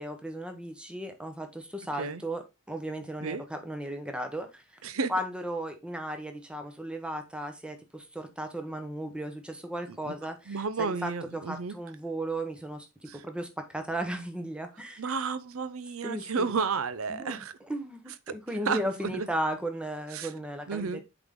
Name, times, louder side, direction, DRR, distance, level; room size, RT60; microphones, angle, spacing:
voice 1, 0.0-4.6 5.1-15.1 16.0-16.6 17.1-21.0, right 1 dB, 5° right, 1.0 m, -36 dB
voice 2, 10.5-11.8 13.1-13.2 15.0-17.5 18.3-18.4 18.7-19.3 20.1-20.3 20.7-21.0, right 5 dB, 70° right, 0.6 m, -32 dB
7.9 x 3.9 x 3.6 m
head